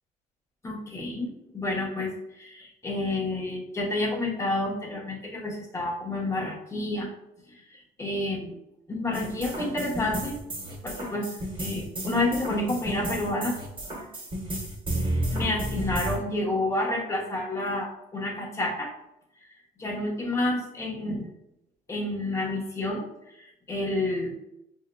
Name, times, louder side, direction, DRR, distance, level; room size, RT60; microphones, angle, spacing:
voice 1, 0.6-7.1 7.5-8.6 8.9-10.4 10.8-11.3 11.6-13.5 15.3-18.9 19.8-21.3 21.9-23.1 23.4-24.4, left 2 dB, 15° left, -3 dB, 0.9 m, -29 dB
sound 1, 9.1-16.2, right 1 dB, 30° right, 1.2 m, -32 dB
6.2 x 2.7 x 2.2 m, 0.83 s
cardioid pair, 110°, 17 cm